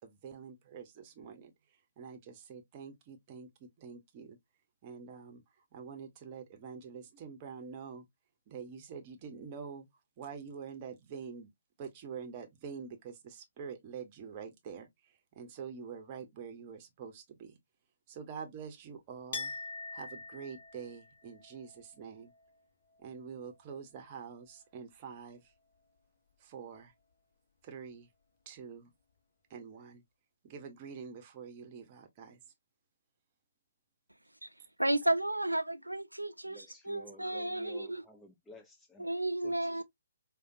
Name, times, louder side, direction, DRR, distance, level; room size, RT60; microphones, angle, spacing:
voice 1, 0.0-4.4 4.8-5.4 5.7-8.0 8.5-9.9 10.2-11.5 11.8-17.6 18.1-19.5 19.9-22.3 23.0-25.5 26.4-26.9 27.6-28.1 28.5-28.9 29.5-30.0 30.4-32.4, right 6 dB, 25° right, 0.7 m, -46 dB
Chink clink, 19.3-24.8 25.1-26.0, left 3 dB, 45° left, 0.9 m, -47 dB
voice 2, 34.8-38.0 39.0-39.8, right 1 dB, 85° right, 0.5 m, -33 dB
voice 3, 36.5-39.1 39.4-39.8, equal, 5° left, 0.3 m, -54 dB
4.9 x 2.2 x 2.5 m
figure-of-eight pair, 135°, 0 cm